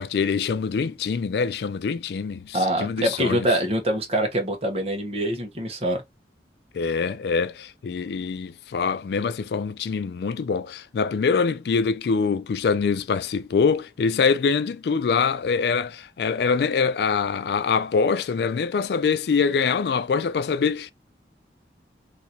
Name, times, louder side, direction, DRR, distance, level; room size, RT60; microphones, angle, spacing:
voice 1, 0.0-3.5 6.7-20.9, left 5 dB, 65° left, 0.3 m, -24 dB
voice 2, 2.5-6.0, right 1 dB, 35° right, 0.9 m, -24 dB
2.8 x 2.5 x 4.1 m
head